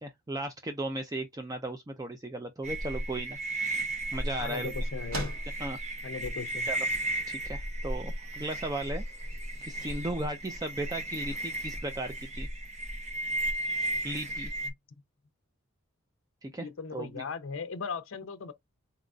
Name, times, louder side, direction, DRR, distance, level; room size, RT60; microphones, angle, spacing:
voice 1, 0.0-3.4 4.1-4.9 5.6-5.8 6.7-6.9 7.3-9.0 9.6-12.5 14.0-14.5 16.4-17.2, right 1 dB, 15° right, 0.4 m, -36 dB
sound 1, 2.6-14.7, right 1 dB, 30° right, 0.9 m, -34 dB
sound 2, 3.1-12.8, equal, 85° right, 2.2 m, -48 dB
voice 2, 4.4-5.3 6.0-6.7 16.6-18.5, left 5 dB, 65° left, 0.6 m, -38 dB
4.0 x 3.9 x 2.3 m
head